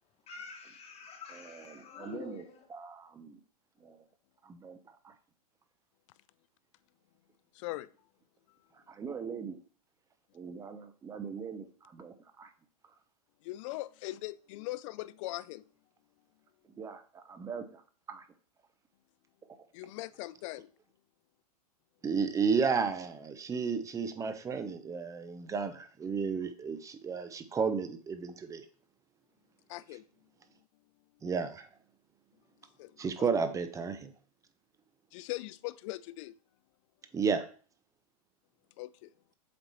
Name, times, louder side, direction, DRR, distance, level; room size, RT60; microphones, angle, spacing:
voice 1, 0.3-2.7, left 5 dB, 30° left, 1.3 m, -47 dB
voice 2, 1.3-2.4 2.7-3.4 3.8-4.0 4.4-5.1 8.7-9.6 10.4-12.5 16.8-17.8 18.1-18.3 22.0-28.7 29.9-30.0 31.2-31.8 33.0-34.1 37.1-37.5, right 5 dB, 15° right, 0.7 m, -34 dB
voice 3, 7.5-7.9 13.4-15.7 19.7-20.7 29.7-30.0 32.8-33.0 35.1-36.4 38.8-39.1, left 18 dB, 50° left, 0.4 m, -40 dB
7.7 x 3.0 x 4.1 m
hypercardioid pair, 110°, 20 cm